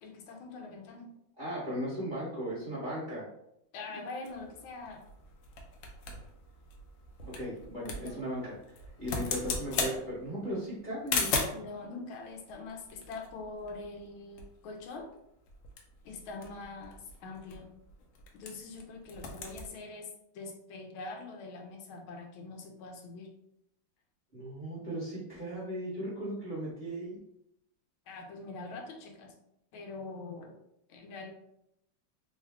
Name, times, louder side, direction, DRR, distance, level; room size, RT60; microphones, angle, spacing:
voice 1, 0.0-1.1 3.7-5.1 7.9-8.2 11.5-15.1 16.0-17.7 18.3-23.3 28.1-29.3 29.7-30.6 30.9-31.3, left 3 dB, 90° left, 2 dB, 1.5 m, -44 dB
voice 2, 1.4-3.2 7.3-8.5 9.0-11.3 24.3-27.2, equal, 30° right, -9 dB, 1.1 m, -37 dB
sound 1, 4.2-11.7 12.5-14.1 14.4-14.5 14.8-15.1 15.5-18.8 19.0-19.7, left 4 dB, 70° left, 1.2 m, -38 dB
3.5 x 2.2 x 3.5 m, 0.79 s
omnidirectional pair, 2.2 m